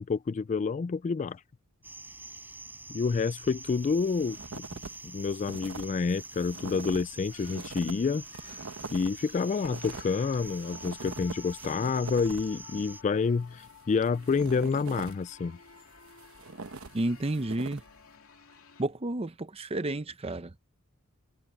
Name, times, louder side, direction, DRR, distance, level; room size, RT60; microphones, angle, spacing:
voice 1, 0.0-1.4 2.9-4.7 5.0-8.2 8.9-15.6, left 5 dB, 35° left, 0.3 m, -28 dB
sound 1, 1.8-13.0, right 2 dB, 10° right, 5.0 m, -46 dB
sound 2, 3.6-5.0 5.2-12.6 13.4-15.3 15.8-18.0, right 4 dB, 80° right, 1.0 m, -43 dB
sound 3, 7.3-18.8, left 7 dB, 85° left, 2.4 m, -53 dB
voice 2, 16.9-17.8 18.8-20.6, right 2 dB, 30° right, 0.7 m, -31 dB
head